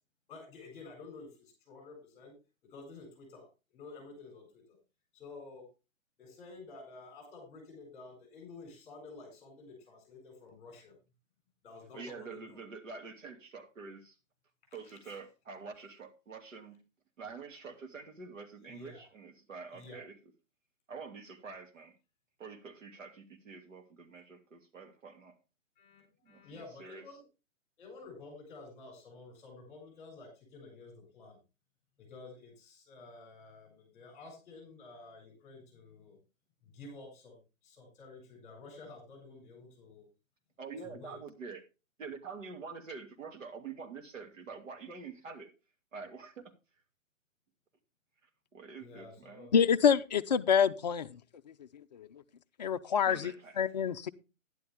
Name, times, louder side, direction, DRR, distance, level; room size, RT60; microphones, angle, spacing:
voice 1, 0.3-2.3 2.7-3.5 3.7-4.8 5.1-5.7 6.2-11.0 11.6-12.6 14.8-15.2 18.7-19.1 19.7-20.0 25.8-27.2 27.8-31.4 32.0-36.2 36.6-40.1 40.8-41.2 48.8-49.5, left 3 dB, 15° left, 7.6 m, -51 dB
voice 2, 11.9-14.2 14.7-16.8 17.2-20.1 20.9-21.9 22.4-25.3 26.3-27.0 40.6-41.6 42.0-45.5 45.9-46.5 48.5-49.5 53.1-53.6, right 5 dB, 75° right, 2.7 m, -46 dB
voice 3, 49.5-51.2 51.9-52.2 52.6-54.1, left 7 dB, 35° left, 0.5 m, -27 dB
11.0 x 11.0 x 3.5 m
hypercardioid pair, 155°, 39 cm